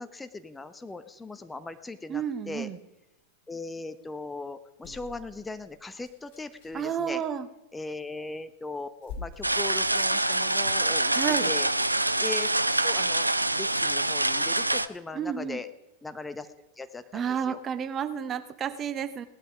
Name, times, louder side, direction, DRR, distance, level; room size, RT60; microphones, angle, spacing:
voice 1, 0.0-2.7 3.5-7.2 7.7-11.1 11.4-11.7 12.2-12.5 12.8-15.7 16.0-16.5 16.8-17.6, left 3 dB, 10° left, 10 dB, 0.8 m, -39 dB
voice 2, 2.1-2.8 6.7-7.5 11.1-11.5 15.1-15.6 17.1-19.3, right 8 dB, 25° right, 11 dB, 0.9 m, -31 dB
sound 1, 4.8-6.9 8.4-8.5 8.9-12.5 13.0-13.1, left 5 dB, 50° left, 3.8 m, -47 dB
sound 2, 9.4-14.9, right 1 dB, 85° right, 0.5 m, -25 dB
18.0 x 11.5 x 5.2 m, 0.94 s
figure-of-eight pair, 90°, 0 cm